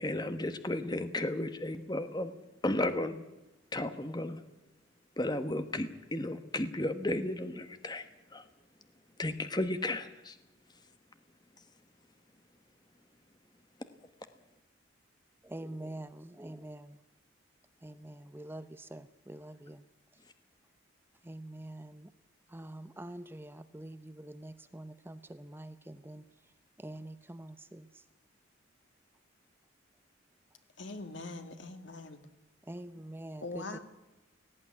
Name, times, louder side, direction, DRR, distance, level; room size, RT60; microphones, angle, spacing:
voice 1, 0.0-2.3 2.6-3.2 3.7-4.4 5.2-8.0 8.3-8.4 9.2-10.3, left 1 dB, 20° left, 9 dB, 1.1 m, -33 dB
voice 2, 15.4-17.0 17.8-19.8 21.2-22.1 22.5-26.3 26.8-28.0 32.6-33.8, right 1 dB, 10° right, 12 dB, 0.7 m, -45 dB
voice 3, 30.8-32.2 33.4-33.8, left 2 dB, 65° left, 8 dB, 2.1 m, -42 dB
17.5 x 16.5 x 9.7 m, 1.0 s
head